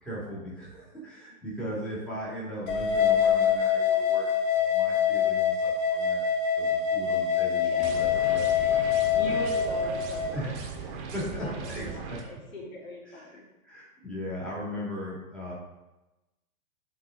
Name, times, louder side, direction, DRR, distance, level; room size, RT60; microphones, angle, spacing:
voice 1, 0.0-6.3 6.5-8.5 9.2-9.4 10.3-12.2 13.1-15.5, equal, ahead, -8 dB, 1.9 m, -38 dB
sound 1, 2.7-10.3, left 8 dB, 20° left, 0.7 m, -25 dB
voice 2, 7.3-7.9 8.5-10.5 11.4-13.4, left 1 dB, 65° left, -3 dB, 2.7 m, -41 dB
sound 2, 7.8-12.2, right 5 dB, 30° right, 1.2 m, -39 dB
11.0 x 3.9 x 3.6 m, 1.0 s
hypercardioid pair, 130°, 44 cm